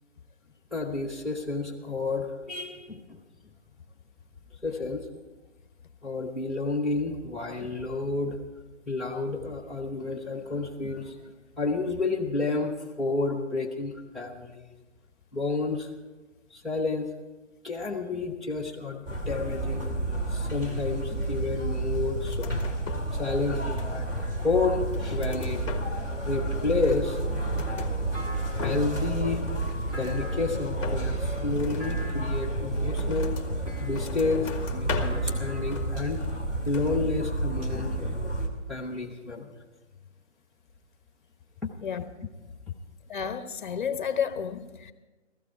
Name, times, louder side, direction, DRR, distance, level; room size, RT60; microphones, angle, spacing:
voice 1, 0.7-3.2 4.6-5.0 6.0-8.4 8.9-11.1 11.6-12.7 13.0-14.6 15.3-15.9 16.5-17.1 17.6-19.9 20.3-22.5 23.2-24.1 24.4-25.6 26.3-27.2 28.6-29.4 29.9-33.3 33.8-36.2 36.6-38.3 38.7-39.5, left 3 dB, ahead, -4 dB, 0.4 m, -30 dB
sound 1, 19.0-38.5, right 2 dB, 20° right, 1.5 m, -30 dB
sound 2, 22.2-23.2 23.5-24.2 24.7-26.2 26.5-27.9 28.4-29.1 29.4-30.3 30.8-33.5 33.9-35.3 35.7-36.4 36.7-37.0, left 5 dB, 25° left, 1.4 m, -39 dB
Thump thud, 28.1-29.1 29.9-30.8 31.8-32.5 33.6-34.3 35.0-36.0, equal, 40° right, 4.6 m, -44 dB
voice 2, 43.1-44.9, left 7 dB, 40° left, 10 dB, 1.0 m, -31 dB
15.5 x 15.0 x 4.7 m, 1.2 s
hypercardioid pair, 165°, 37 cm